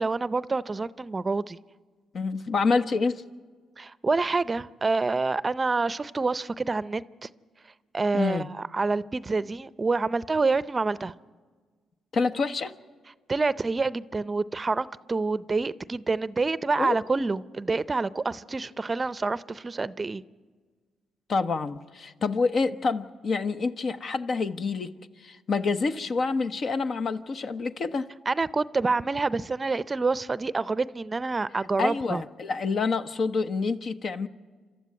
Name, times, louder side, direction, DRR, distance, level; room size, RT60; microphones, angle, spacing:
voice 1, 0.0-1.6 3.8-7.3 7.9-11.1 13.3-20.2 28.3-32.2, right 3 dB, 30° right, 0.6 m, -27 dB
voice 2, 2.1-3.2 8.1-8.5 12.1-12.7 16.8-16.9 21.3-24.9 25.2-28.1 31.8-34.3, left 4 dB, 55° left, 0.9 m, -27 dB
28.0 x 13.0 x 9.5 m
supercardioid pair, 60°, 0 cm